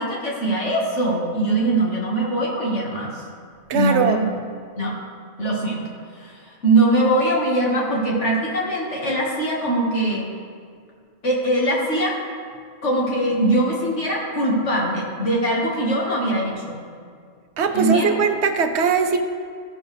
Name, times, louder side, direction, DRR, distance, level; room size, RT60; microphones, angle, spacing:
voice 1, 0.0-3.2 3.7-4.3 4.8-4.9 5.4-5.9 6.2-10.3 11.2-12.2 12.8-16.8 17.7-18.2, right 1 dB, 75° left, -3 dB, 2.1 m, -22 dB
voice 2, 3.7-4.2 17.6-19.2, right 5 dB, 70° right, 6 dB, 1.0 m, -20 dB
15.0 x 6.9 x 3.4 m, 2.2 s
omnidirectional pair, 1.2 m